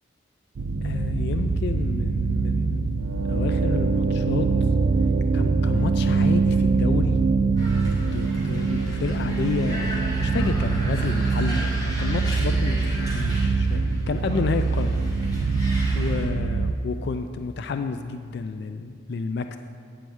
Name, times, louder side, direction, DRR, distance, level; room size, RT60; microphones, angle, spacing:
sound 1, 0.6-16.7, right 4 dB, 85° right, 0.4 m, -23 dB
voice 1, 0.8-2.9 3.3-4.5 5.3-7.2 8.0-15.0 15.9-19.6, left 4 dB, 60° left, 8 dB, 0.3 m, -30 dB
sound 2, 7.6-16.3, equal, 20° left, 1.5 m, -37 dB
8.9 x 4.6 x 7.0 m, 2.2 s
head